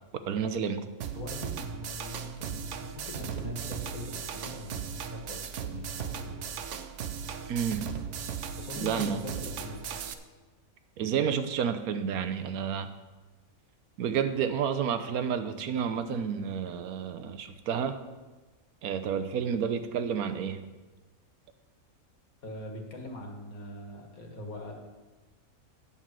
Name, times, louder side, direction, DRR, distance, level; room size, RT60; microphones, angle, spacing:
voice 1, 0.3-0.9 7.5-7.9 8.8-9.2 11.0-12.9 14.0-18.0 18.8-20.6, right 7 dB, 90° right, 10 dB, 1.3 m, -30 dB
sound 1, 1.0-10.1, right 7 dB, 65° right, 0.9 m, -37 dB
voice 2, 1.1-6.6 8.6-10.0 22.4-24.7, left 1 dB, 80° left, 2 dB, 2.1 m, -42 dB
10.0 x 5.5 x 7.5 m, 1.2 s
omnidirectional pair, 1.5 m